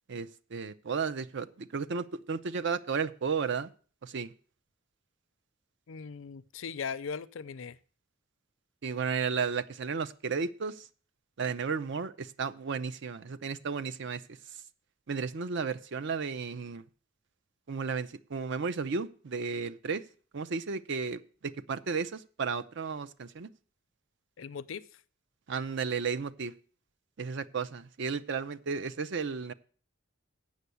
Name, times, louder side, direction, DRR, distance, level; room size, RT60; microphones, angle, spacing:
voice 1, 0.1-3.7 4.0-4.3 8.8-10.9 11.4-14.2 15.1-16.8 17.7-20.0 20.3-23.5 25.5-26.5 27.2-29.5, right 5 dB, 65° right, 0.6 m, -33 dB
voice 2, 5.9-7.8 24.4-25.0, left 6 dB, 75° left, 0.5 m, -39 dB
8.1 x 6.2 x 8.2 m
head